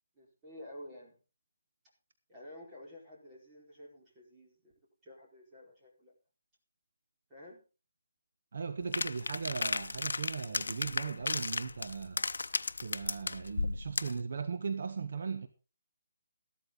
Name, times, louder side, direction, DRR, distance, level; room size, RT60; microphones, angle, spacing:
voice 1, 0.1-1.2 2.3-4.7 5.0-6.1 7.3-7.6, left 1 dB, 15° right, 4.6 m, -51 dB
voice 2, 8.5-12.2 12.8-15.5, right 5 dB, 60° right, 1.3 m, -38 dB
sound 1, 8.9-14.2, left 3 dB, 85° left, 0.6 m, -34 dB
14.0 x 13.0 x 3.9 m
hypercardioid pair, 170°, 0 cm